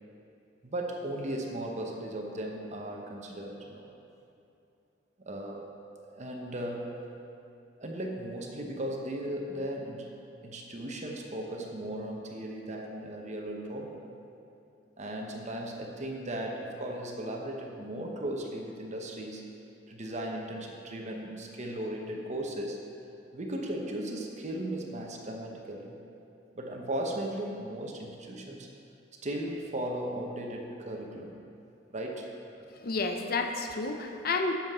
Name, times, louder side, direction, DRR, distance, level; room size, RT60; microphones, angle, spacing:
voice 1, 0.6-3.9 5.2-5.6 6.0-7.0 7.8-10.1 10.4-14.1 15.0-19.4 19.9-22.8 23.3-26.0 26.5-28.7 29.2-31.4 31.9-32.3, right 1 dB, 40° right, 1 dB, 1.0 m, -36 dB
voice 2, 32.7-34.5, left 3 dB, 55° left, 5 dB, 0.6 m, -30 dB
11.0 x 7.3 x 3.7 m, 2.7 s
head